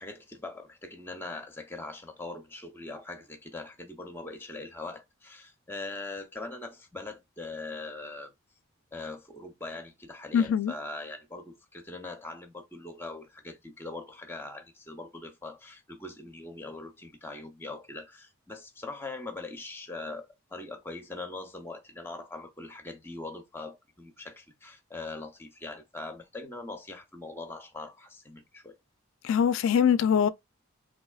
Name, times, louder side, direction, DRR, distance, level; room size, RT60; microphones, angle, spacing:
voice 1, 0.0-8.3 8.9-28.8, left 2 dB, 10° left, 0.7 m, -41 dB
voice 2, 10.3-10.7 29.2-30.3, left 7 dB, 60° left, 0.3 m, -23 dB
3.5 x 2.8 x 2.3 m
head